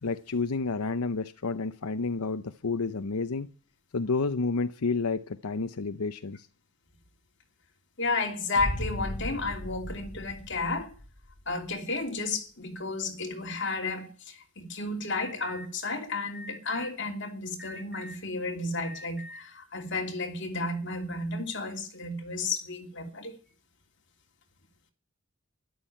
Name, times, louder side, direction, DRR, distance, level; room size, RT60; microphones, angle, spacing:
voice 1, 0.0-3.5 3.9-6.5, left 4 dB, 90° left, 0.7 m, -30 dB
voice 2, 8.0-10.9 11.5-23.4, left 3 dB, 55° left, 2.9 m, -32 dB
sound 1, 8.6-11.5, left 1 dB, 35° left, 1.3 m, -37 dB
Alarm, 15.1-15.7 16.3-16.9 17.6-18.2 18.8-19.4, left 1 dB, 5° right, 1.9 m, -44 dB
13.0 x 12.0 x 9.0 m
head